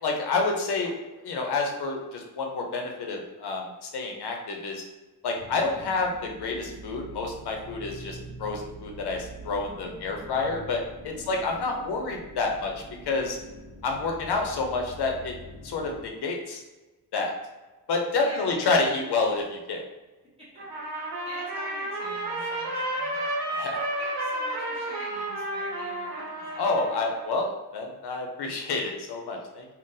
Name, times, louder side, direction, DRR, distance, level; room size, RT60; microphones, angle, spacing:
voice 1, 0.0-4.8 5.2-12.7 13.0-13.4 13.8-15.3 15.6-16.6 17.1-17.4 17.9-19.8 23.5-23.8 26.6-29.7, left 3 dB, 75° left, 2 dB, 0.6 m, -29 dB
sound 1, 5.3-16.0, right 1 dB, 45° right, 0.7 m, -45 dB
voice 2, 11.1-11.5 18.2-18.7 20.5-20.6 21.2-23.2 23.9-26.6, equal, 15° right, -10 dB, 1.2 m, -45 dB
Trumpet, 20.6-27.3, right 1 dB, 80° right, 0.8 m, -32 dB
3.7 x 2.1 x 2.6 m, 1.2 s
wide cardioid pair, 160°, 39 cm